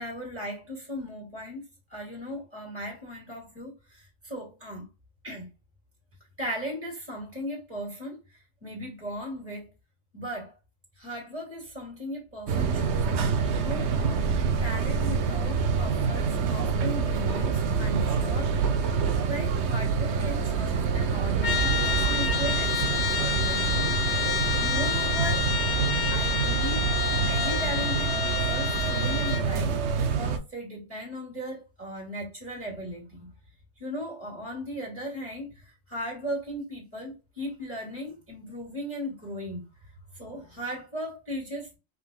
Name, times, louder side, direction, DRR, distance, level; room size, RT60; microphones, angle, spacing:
voice 1, 0.0-4.8 5.2-5.5 6.4-8.2 8.6-9.7 10.1-10.5 11.0-18.5 19.2-24.0 24.6-25.5 26.1-33.3 33.8-39.7 40.1-41.8, equal, 10° right, 2.3 m, -37 dB
sound 1, 12.5-30.4, right 5 dB, 65° right, 0.9 m, -26 dB
Trumpet, 21.4-29.5, left 7 dB, 60° left, 1.0 m, -29 dB
5.5 x 3.9 x 2.3 m
omnidirectional pair, 1.3 m